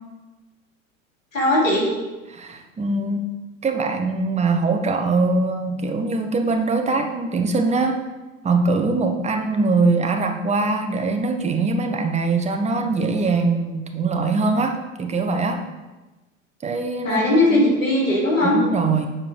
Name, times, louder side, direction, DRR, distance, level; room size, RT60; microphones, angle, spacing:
voice 1, 1.3-1.9 17.0-18.6, left 1 dB, 85° left, -4 dB, 2.8 m, -18 dB
voice 2, 2.3-3.3 3.6-8.0 8.4-15.6 16.6-17.6 18.4-19.1, right 3 dB, 15° right, 4 dB, 0.9 m, -22 dB
7.3 x 4.7 x 5.0 m, 1.1 s
hypercardioid pair, 85°, 39 cm